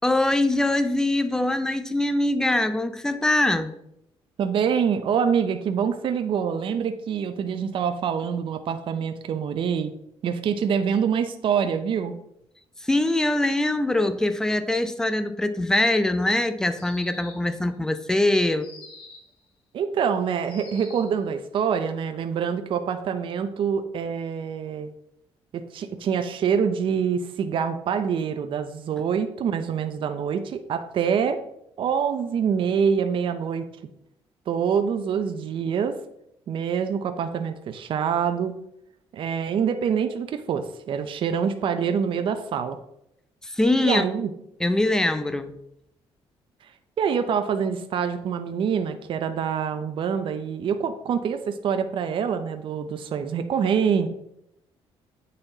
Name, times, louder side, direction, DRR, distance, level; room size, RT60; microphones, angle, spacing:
voice 1, 0.0-3.7 12.8-18.7 43.4-44.1 44.6-45.6, left 1 dB, 5° left, 10 dB, 0.5 m, -23 dB
voice 2, 4.4-9.9 10.2-12.1 19.7-24.9 25.5-31.4 31.8-33.6 34.5-36.0 36.5-38.5 39.1-42.8 43.8-44.3 46.6-46.7 47.0-54.1, right 7 dB, 55° right, 8 dB, 0.6 m, -25 dB
sound 1, 16.7-17.6 18.6-19.4 20.4-21.2, left 3 dB, 55° left, 2.4 m, -45 dB
8.8 x 4.1 x 3.9 m, 0.78 s
cardioid pair, 115°, 10 cm